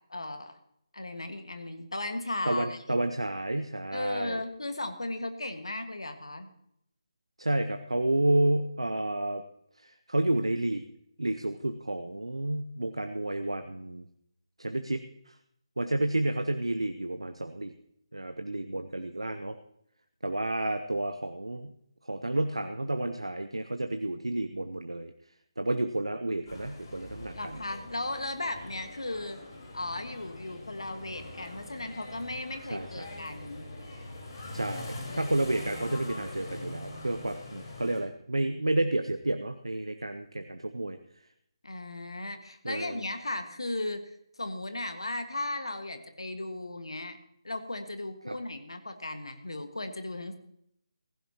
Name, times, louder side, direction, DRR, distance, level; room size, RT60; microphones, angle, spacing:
voice 1, 0.1-0.6 0.9-3.0 3.9-6.5 27.4-29.4 29.7-33.7 41.6-47.2 47.4-50.4, left 2 dB, 70° left, 7 dB, 1.7 m, -36 dB
voice 2, 2.5-4.4 7.4-9.4 9.8-10.8 11.2-14.0 14.6-15.3 15.8-17.7 18.1-19.6 20.2-21.7 22.0-25.1 25.6-27.3 32.7-33.1 34.5-41.0 42.6-43.0 48.3-48.4, right 1 dB, 75° right, 8 dB, 0.9 m, -30 dB
sound 1, 26.5-38.0, left 2 dB, 40° left, 4.3 m, -43 dB
15.5 x 15.5 x 3.0 m, 0.73 s
figure-of-eight pair, 150°, 3 cm